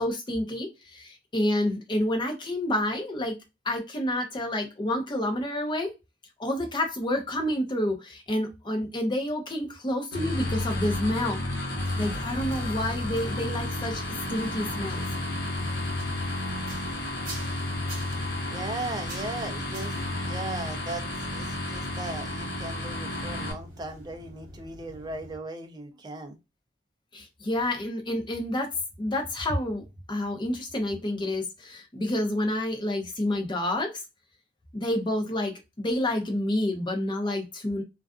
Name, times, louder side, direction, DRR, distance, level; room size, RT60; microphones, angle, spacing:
voice 1, 0.0-3.4 3.6-5.9 6.4-11.4 12.0-14.0 14.3-15.1 27.1-28.7 29.0-29.8 30.1-33.9 34.7-37.8, left 1 dB, 25° left, 3 dB, 0.6 m, -29 dB
sound 1, 10.1-23.5, left 1 dB, 70° left, 1.0 m, -32 dB
sound 2, 11.8-25.4, right 1 dB, 45° right, 0.9 m, -46 dB
voice 2, 18.2-19.9 20.2-26.4, right 2 dB, 20° right, 5 dB, 0.4 m, -38 dB
2.4 x 2.4 x 2.3 m, 0.24 s
head